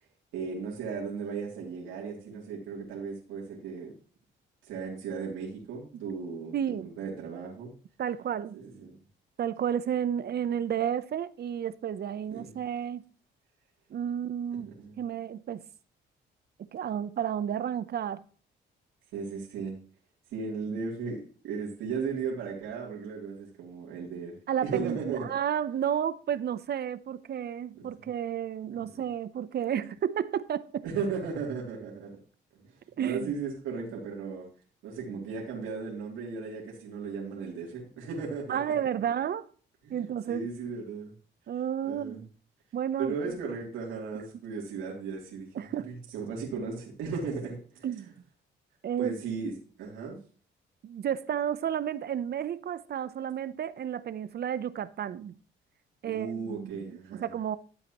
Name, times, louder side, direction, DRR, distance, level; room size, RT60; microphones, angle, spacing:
voice 1, 0.3-3.9 4.6-7.7 8.6-9.0 12.3-12.5 14.8-15.0 19.1-19.8 20.3-24.4 24.6-25.3 27.7-27.9 28.8-28.9 30.8-32.2 32.6-34.5 34.8-38.6 39.8-41.1 41.8-42.2 43.0-47.9 49.0-50.2 56.0-57.3, right 5 dB, 90° right, 2.8 m, -36 dB
voice 2, 6.5-6.9 8.0-8.6 9.4-13.0 13.9-15.6 16.6-18.2 24.5-30.8 33.0-33.3 38.5-39.5 39.9-40.5 41.5-42.3 42.7-43.3 45.5-45.9 47.8-48.1 48.8-49.1 50.8-55.4 56.0-57.6, right 9 dB, 55° right, 0.7 m, -32 dB
12.5 x 8.1 x 3.0 m
cardioid pair, 90°, 20 cm